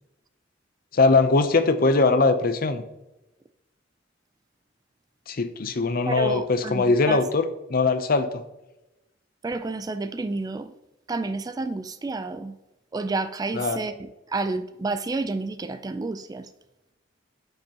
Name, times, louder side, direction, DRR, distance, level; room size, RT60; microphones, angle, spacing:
voice 1, 0.9-2.8 5.3-8.4 13.5-13.8, left 3 dB, 50° left, 10 dB, 0.6 m, -21 dB
voice 2, 6.1-7.2 9.4-10.7 11.1-12.5 12.9-16.5, right 3 dB, 20° right, 11 dB, 0.3 m, -30 dB
9.0 x 5.4 x 2.9 m, 0.96 s
head